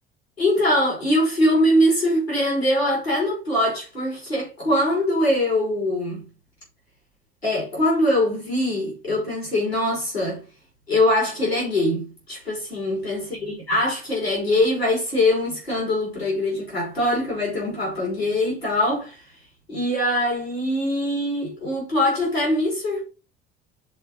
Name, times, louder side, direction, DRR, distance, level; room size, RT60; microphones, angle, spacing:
voice 1, 0.4-6.3 7.4-10.4 10.9-19.2 19.7-23.0, left 1 dB, 90° left, 3.9 m, -22 dB
6.9 x 4.5 x 5.3 m
figure-of-eight pair, 55°, 30 cm